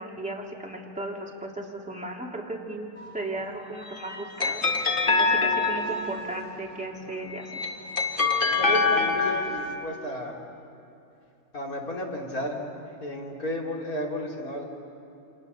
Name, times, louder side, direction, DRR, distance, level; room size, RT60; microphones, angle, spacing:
voice 1, 0.0-2.9 3.1-4.7 5.2-7.6, right 2 dB, 5° right, -2 dB, 3.1 m, -35 dB
sound 1, 3.7-6.4 7.3-9.7, left 4 dB, 25° left, 1.6 m, -25 dB
voice 2, 8.6-10.4 11.5-12.6 13.0-14.6, left 1 dB, 40° left, -1 dB, 3.6 m, -32 dB
29.0 x 27.0 x 6.9 m, 2.7 s
omnidirectional pair, 2.3 m